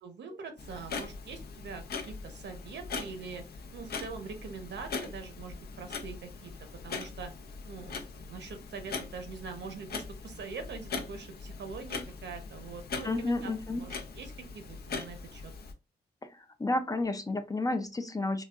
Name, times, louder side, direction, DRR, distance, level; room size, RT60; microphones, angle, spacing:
voice 1, 0.0-3.4 3.7-6.5 6.8-7.3 7.7-15.5, right 5 dB, 85° right, 6 dB, 0.8 m, -43 dB
Clock, 0.6-15.7, left 4 dB, 65° left, 0.6 m, -41 dB
voice 2, 13.0-13.8 16.2-18.4, left 2 dB, 20° left, 8 dB, 0.4 m, -31 dB
3.9 x 2.2 x 2.3 m, 0.28 s
wide cardioid pair, 130°, 18 cm